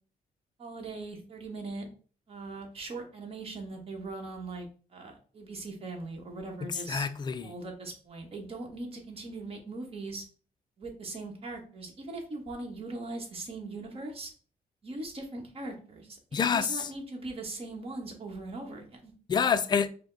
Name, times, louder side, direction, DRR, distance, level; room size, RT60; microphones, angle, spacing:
voice 1, 0.6-1.9 2.3-7.1 7.4-10.2 10.8-14.3 14.8-16.2 16.5-19.1, right 2 dB, 40° right, 1.1 m, -40 dB
voice 2, 6.9-7.5 16.3-16.9 19.3-19.9, left 6 dB, 30° left, 0.4 m, -27 dB
4.9 x 2.1 x 3.8 m
cardioid pair, 120°, 15 cm